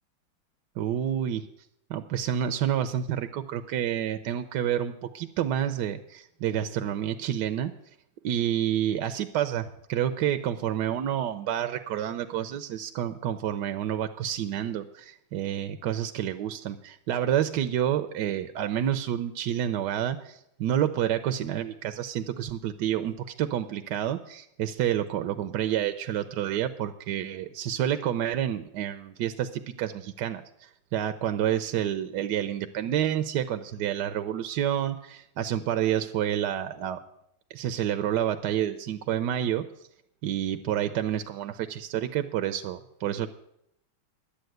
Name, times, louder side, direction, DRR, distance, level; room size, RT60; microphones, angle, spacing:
voice 1, 0.8-1.4 1.9-7.7 8.2-37.0 37.5-39.6 40.2-43.3, right 10 dB, 70° right, 9 dB, 1.1 m, -29 dB
11.5 x 8.5 x 7.8 m, 0.77 s
omnidirectional pair, 2.3 m